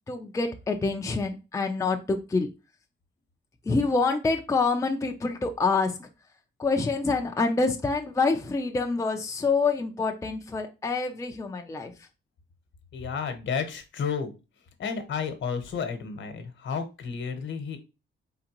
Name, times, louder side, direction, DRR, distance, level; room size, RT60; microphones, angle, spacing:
voice 1, 0.1-2.5 3.7-6.1 6.6-11.9, left 4 dB, 15° left, 0.5 m, -26 dB
voice 2, 12.9-14.3 14.8-17.8, left 6 dB, 65° left, 1.0 m, -32 dB
4.3 x 3.8 x 2.9 m
wide cardioid pair, 160°, 20 cm